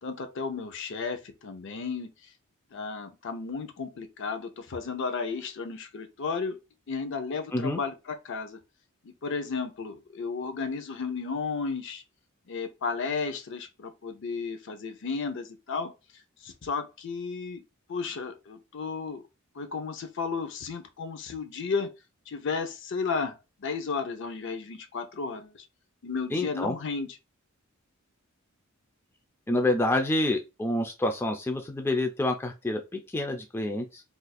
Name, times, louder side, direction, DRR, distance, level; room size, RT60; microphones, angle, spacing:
voice 1, 0.0-2.1 2.7-6.6 6.9-8.6 9.0-12.0 12.5-15.9 16.4-17.6 17.9-19.2 19.6-21.9 22.3-25.6 26.0-27.1, left 4 dB, 60° left, 0.5 m, -33 dB
voice 2, 26.3-26.8 29.5-34.0, left 1 dB, 10° left, 0.4 m, -28 dB
2.5 x 2.3 x 4.0 m
head